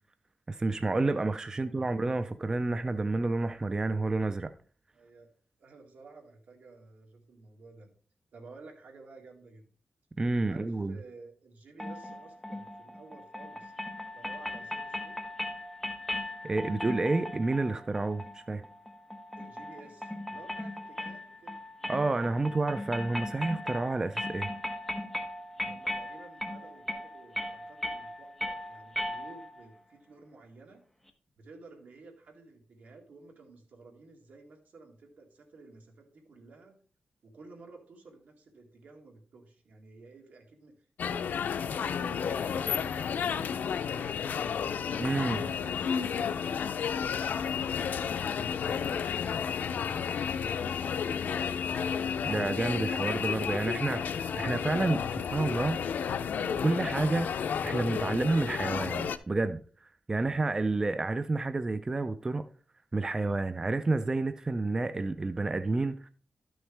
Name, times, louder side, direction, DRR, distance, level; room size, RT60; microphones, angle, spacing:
voice 1, 0.5-4.5 10.2-10.9 16.4-18.6 21.9-24.5 45.0-45.4 52.3-55.8 56.6-59.6 60.1-62.4 62.9-66.1, right 2 dB, 20° right, 0.4 m, -30 dB
voice 2, 4.9-5.3 5.6-7.9 8.3-9.7 10.5-13.7 14.1-15.2 18.5-18.6 19.4-21.6 25.6-30.8 31.4-36.8 37.2-43.6 43.9-44.5 45.0-49.0, right 3 dB, 75° right, 2.0 m, -53 dB
sound 1, 11.8-29.7, left 1 dB, 5° left, 1.0 m, -38 dB
sound 2, 41.0-59.2, left 7 dB, 90° left, 0.4 m, -32 dB
12.0 x 6.2 x 3.3 m
wide cardioid pair, 140°, 3 cm